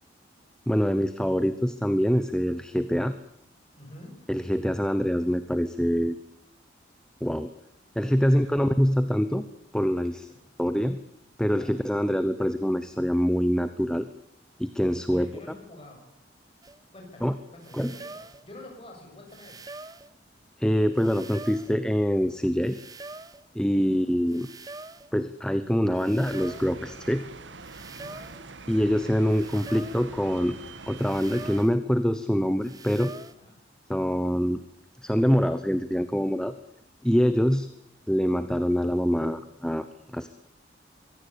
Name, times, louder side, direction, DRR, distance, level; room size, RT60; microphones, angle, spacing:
voice 1, 0.7-3.1 4.3-6.2 7.2-7.5 8.0-9.4 9.7-10.3 10.6-11.0 11.4-14.1 14.6-15.3 17.2-17.3 17.7-17.9 20.6-22.8 23.5-24.5 25.1-27.2 28.7-30.6 30.9-33.1 33.9-34.6 35.0-36.5 37.0-37.7 38.1-39.9 40.1-40.3, equal, 5° left, 11 dB, 0.9 m, -25 dB
voice 2, 3.8-4.1 8.1-8.6 10.3-10.4 11.5-11.7 15.1-16.1 16.9-19.6 23.7-23.9 27.9-28.2 33.3-33.6, left 1 dB, 30° left, 1 dB, 7.8 m, -47 dB
sound 1, 16.6-16.8 17.6-18.4 19.3-20.1 21.0-21.8 22.6-23.4 24.3-25.1 26.0-26.8 27.6-28.4 29.3-30.1 31.0-31.8 32.6-33.3, right 3 dB, 20° right, 1.0 m, -44 dB
sound 2, 26.2-31.7, right 3 dB, 85° right, 1.5 m, -44 dB
24.0 x 17.0 x 8.7 m, 0.75 s
head